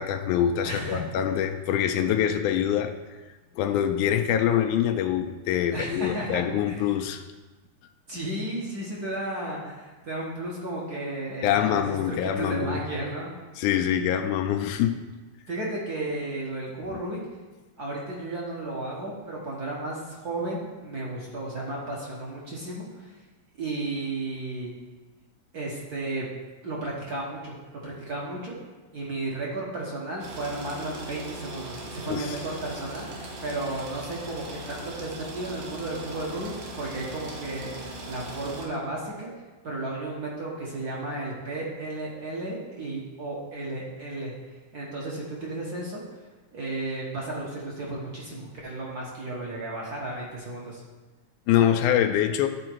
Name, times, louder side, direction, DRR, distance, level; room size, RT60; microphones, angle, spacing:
voice 1, 0.0-2.9 3.6-7.2 11.4-12.8 13.6-15.0 32.1-32.4 51.5-52.5, left 10 dB, 90° left, 7 dB, 2.0 m, -24 dB
voice 2, 0.6-1.0 5.7-6.9 8.1-13.3 15.5-17.2 17.8-23.1 23.6-24.7 25.5-26.3 26.6-27.5 27.8-28.5 28.9-36.5 36.8-39.3 39.6-44.3 44.7-46.0 46.5-50.8, right 2 dB, 50° right, -4 dB, 1.2 m, -33 dB
sound 1, 30.2-38.7, right 1 dB, 70° right, 2.4 m, -39 dB
12.5 x 4.3 x 4.6 m, 1.2 s
omnidirectional pair, 3.5 m